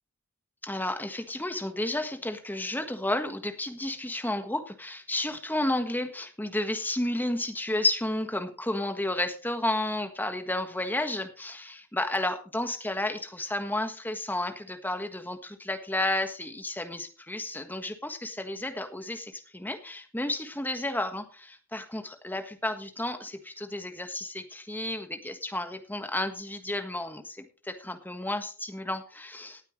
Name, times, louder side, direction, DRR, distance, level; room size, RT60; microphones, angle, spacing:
voice 1, 0.6-29.6, left 1 dB, 10° left, 7 dB, 1.5 m, -32 dB
18.5 x 9.0 x 3.2 m, 0.35 s
head